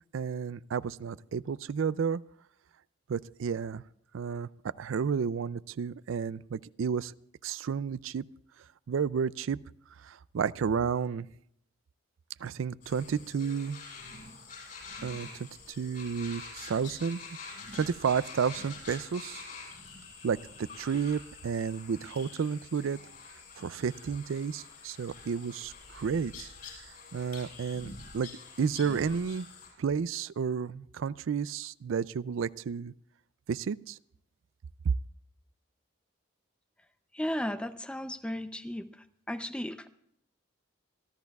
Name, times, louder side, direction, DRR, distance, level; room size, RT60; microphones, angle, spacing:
voice 1, 0.1-2.2 3.1-3.8 4.1-4.5 4.8-7.1 7.4-8.2 8.9-9.6 10.0-11.3 12.4-13.8 15.0-17.2 17.7-19.5 20.2-23.0 23.6-26.5 26.8-28.3 28.6-29.5 29.8-32.9 33.5-34.0 34.8-34.9, right 6 dB, 85° right, 18 dB, 0.4 m, -31 dB
sound 1, 12.8-29.7, left 4 dB, 50° left, 7.6 m, -47 dB
voice 2, 37.1-38.9 39.3-39.9, left 1 dB, 5° left, 11 dB, 0.5 m, -34 dB
27.0 x 13.0 x 2.3 m, 0.71 s
head